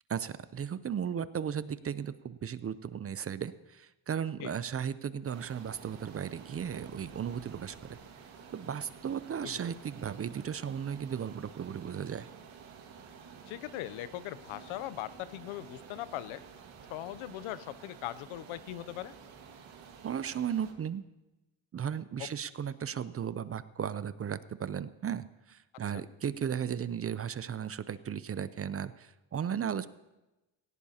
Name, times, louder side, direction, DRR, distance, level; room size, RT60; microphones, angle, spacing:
voice 1, 0.1-8.0 8.5-12.3 20.0-21.0 21.7-29.9, right 8 dB, 30° right, 15 dB, 0.5 m, -35 dB
sound 1, 5.2-20.7, right 6 dB, 70° right, 2.0 m, -51 dB
sound 2, 6.6-8.3, left 5 dB, 55° left, 3.1 m, -60 dB
voice 2, 13.5-16.4 16.9-19.1 22.2-22.3, left 14 dB, 80° left, 15 dB, 0.7 m, -40 dB
17.5 x 16.5 x 2.8 m, 1.0 s
cardioid pair, 90°, 48 cm